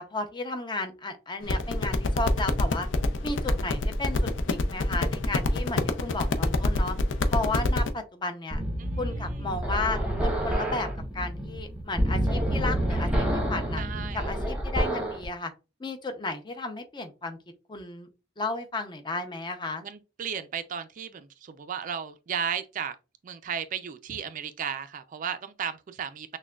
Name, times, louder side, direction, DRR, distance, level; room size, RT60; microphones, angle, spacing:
voice 1, 0.0-2.9 3.2-7.0 7.3-8.6 9.0-13.8 14.1-15.5 15.8-17.4 17.7-18.1 18.4-19.8, left 2 dB, 25° left, 0.6 m, -33 dB
sound 1, 1.4-7.9, left 2 dB, 85° left, 0.5 m, -26 dB
sound 2, 8.5-15.2, equal, 5° right, 0.9 m, -28 dB
voice 2, 8.8-9.6 13.8-14.3 19.8-23.0 23.2-26.4, right 7 dB, 45° right, 0.3 m, -35 dB
6.1 x 2.2 x 2.3 m
head